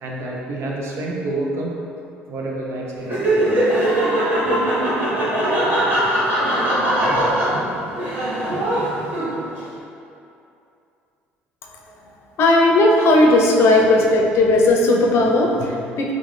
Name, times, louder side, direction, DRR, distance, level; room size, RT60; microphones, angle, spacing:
voice 1, 0.0-1.7 2.3-3.1, right 2 dB, 60° right, -2 dB, 0.6 m, -27 dB
Laughter, 3.0-9.6, right 1 dB, 40° right, 1.3 m, -20 dB
voice 2, 11.6-12.1 12.4-16.1, left 2 dB, 60° left, 0 dB, 0.5 m, -16 dB
3.6 x 2.5 x 3.2 m, 2.6 s
supercardioid pair, 70°, 5 cm